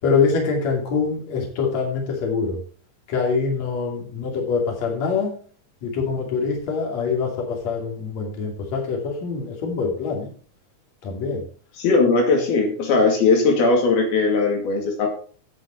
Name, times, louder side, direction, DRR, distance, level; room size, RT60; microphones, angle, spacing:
voice 1, 0.0-2.6 3.1-5.3 5.8-10.3 11.0-11.4, left 5 dB, 50° left, 0 dB, 3.7 m, -24 dB
voice 2, 11.8-15.1, left 3 dB, 80° left, 1 dB, 4.3 m, -19 dB
9.8 x 8.7 x 4.4 m, 0.42 s
omnidirectional pair, 4.3 m